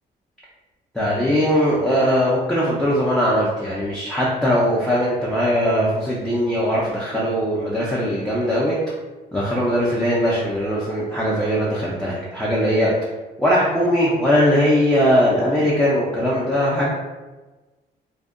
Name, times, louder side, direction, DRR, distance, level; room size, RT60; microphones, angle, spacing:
voice 1, 0.9-8.8 9.3-12.9 13.4-16.9, equal, 5° left, -8 dB, 0.3 m, -20 dB
2.6 x 2.1 x 2.4 m, 1.2 s
cardioid pair, 145°, 17 cm